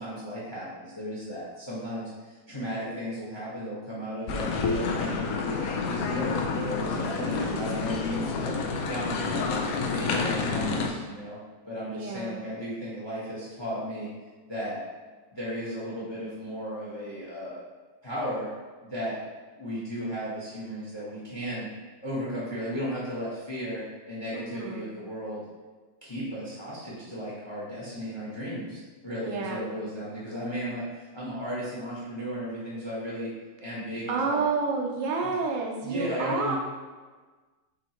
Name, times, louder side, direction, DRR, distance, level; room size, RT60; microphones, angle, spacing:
voice 1, 0.0-5.2 5.4-8.6 8.9-9.6 9.9-11.4 11.7-14.1 14.5-14.8 15.3-17.6 18.0-18.5 18.9-19.2 19.5-21.7 22.0-25.4 26.0-33.3 33.6-34.4 35.2-35.3 35.8-36.6, equal, 20° left, -7 dB, 0.7 m, -35 dB
sound 1, 4.3-10.9, left 4 dB, 80° left, 0.8 m, -29 dB
voice 2, 7.2-7.7 11.9-12.4 24.3-24.9 29.2-29.7 34.1-36.6, right 4 dB, 75° right, 0 dB, 1.2 m, -30 dB
6.3 x 2.8 x 2.9 m, 1.4 s
omnidirectional pair, 2.0 m